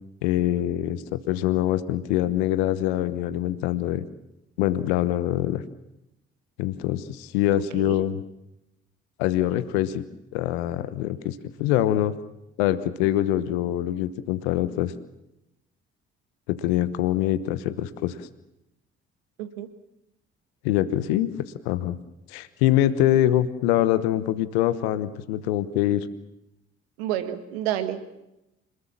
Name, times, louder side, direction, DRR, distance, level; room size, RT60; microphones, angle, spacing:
voice 1, 0.2-4.0 4.6-5.6 6.6-8.2 9.2-10.0 10.3-12.1 12.6-14.9 16.5-18.3 20.6-22.0 22.3-26.1, left 13 dB, 85° left, 13 dB, 1.1 m, -24 dB
voice 2, 7.5-8.0 19.4-19.7 27.0-28.0, right 11 dB, 85° right, 10 dB, 1.7 m, -30 dB
26.5 x 21.0 x 7.4 m, 0.90 s
hypercardioid pair, 45°, 31 cm